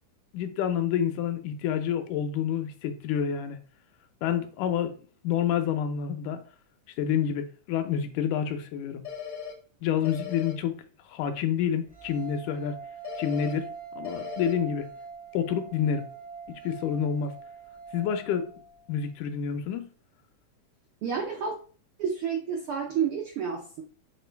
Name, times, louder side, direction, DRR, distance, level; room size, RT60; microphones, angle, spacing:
voice 1, 0.3-3.6 4.2-4.9 5.2-6.4 7.0-9.0 9.8-10.8 11.1-12.8 13.2-13.7 14.0-14.9 15.3-16.1 16.5-17.3 17.9-18.5 18.9-19.9, left 8 dB, 80° left, 2.2 m, -28 dB
sound 1, 9.0-9.5 10.0-10.5 13.0-13.5 14.0-14.5, left 7 dB, 65° left, 0.8 m, -37 dB
sound 2, 11.9-19.0, right 5 dB, 5° right, 0.6 m, -44 dB
voice 2, 21.0-21.6 22.0-23.8, right 7 dB, 80° right, 1.2 m, -30 dB
7.6 x 3.0 x 4.5 m
omnidirectional pair, 3.6 m